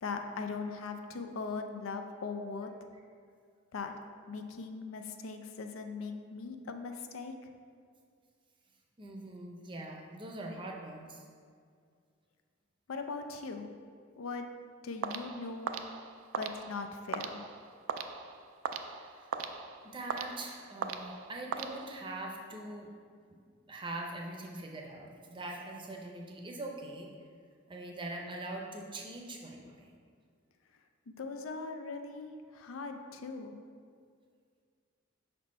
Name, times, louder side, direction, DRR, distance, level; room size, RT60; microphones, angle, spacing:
voice 1, 0.0-2.7 3.7-3.9 4.3-7.3 12.9-13.7 14.2-14.5 14.8-15.8 16.4-17.4 31.1-33.5, left 4 dB, 75° left, 6 dB, 0.5 m, -40 dB
voice 2, 9.0-11.2 18.8-19.5 19.8-22.9 23.7-27.1 27.7-29.9, right 2 dB, 25° right, 0 dB, 0.6 m, -43 dB
sound 1, 15.0-22.3, right 6 dB, 75° right, 0.3 m, -40 dB
5.4 x 4.3 x 4.2 m, 2.1 s
head